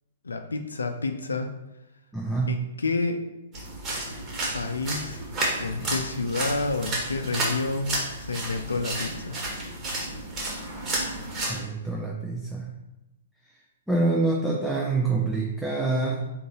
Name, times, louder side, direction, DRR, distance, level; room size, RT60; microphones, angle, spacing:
voice 1, 0.2-1.5 2.5-3.2 4.5-5.2 5.6-9.3, left 3 dB, 80° left, 6 dB, 0.4 m, -29 dB
voice 2, 2.1-2.7 11.5-12.7 13.9-16.3, right 3 dB, 5° right, -3 dB, 0.5 m, -26 dB
sound 1, 3.5-11.6, right 1 dB, 30° right, 1.4 m, -31 dB
3.8 x 3.8 x 2.9 m, 1.0 s
figure-of-eight pair, 120°, 0 cm